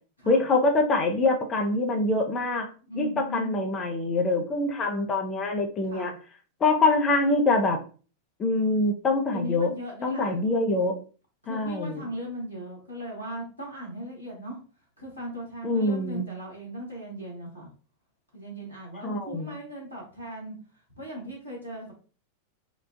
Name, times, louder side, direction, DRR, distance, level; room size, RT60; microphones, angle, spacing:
voice 1, 0.3-2.7 3.0-6.1 6.6-7.8 8.4-9.7 10.0-11.0 11.5-12.0 15.6-16.3 19.0-19.5, left 2 dB, 25° left, 3 dB, 0.7 m, -24 dB
voice 2, 2.8-3.7 5.9-6.1 9.3-10.4 11.4-14.6 15.0-17.7 18.3-20.5 20.9-21.9, right 1 dB, 85° left, -4 dB, 1.4 m, -38 dB
3.8 x 2.4 x 2.4 m, 0.38 s
figure-of-eight pair, 90°, 0 cm